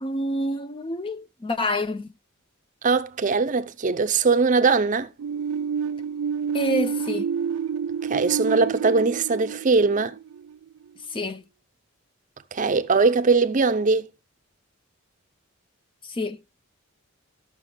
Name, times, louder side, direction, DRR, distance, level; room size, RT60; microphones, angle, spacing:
voice 1, 0.0-2.1 6.5-7.3 11.1-11.4 16.1-16.4, left 1 dB, 25° left, 0.5 m, -27 dB
voice 2, 2.8-5.1 8.0-10.2 12.5-14.1, right 4 dB, 40° right, 0.6 m, -21 dB
sound 1, 5.2-10.9, right 7 dB, 90° right, 0.3 m, -29 dB
14.5 x 6.0 x 2.2 m
head